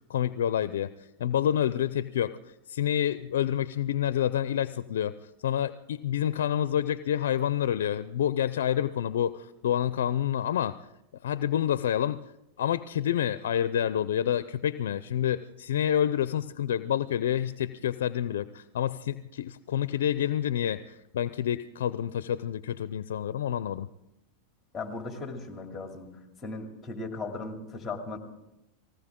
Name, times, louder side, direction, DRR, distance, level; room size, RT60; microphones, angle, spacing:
voice 1, 0.1-0.9 1.2-5.1 5.4-10.8 11.2-12.3 12.6-23.9, left 10 dB, 85° left, 15 dB, 0.4 m, -28 dB
voice 2, 24.7-26.1 26.4-28.2, left 3 dB, 15° left, 3 dB, 2.7 m, -37 dB
19.5 x 17.0 x 3.7 m, 0.87 s
hypercardioid pair, 125°, 0 cm